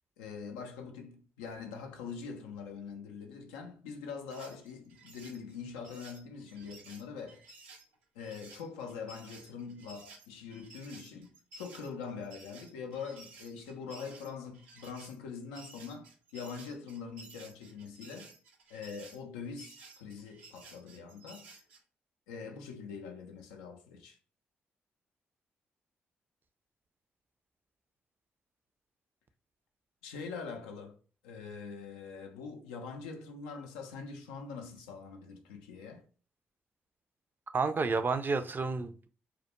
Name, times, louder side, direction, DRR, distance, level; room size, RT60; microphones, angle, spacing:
voice 1, 0.2-7.4 8.1-18.4 18.7-21.5 22.3-24.2 30.0-31.0 31.2-36.1, left 5 dB, 85° left, 0.4 m, -43 dB
sound 1, 4.3-21.8, right 3 dB, 85° right, 0.5 m, -54 dB
voice 2, 37.5-39.1, right 4 dB, 35° right, 0.4 m, -30 dB
2.2 x 2.2 x 2.9 m
hypercardioid pair, 40°, 6 cm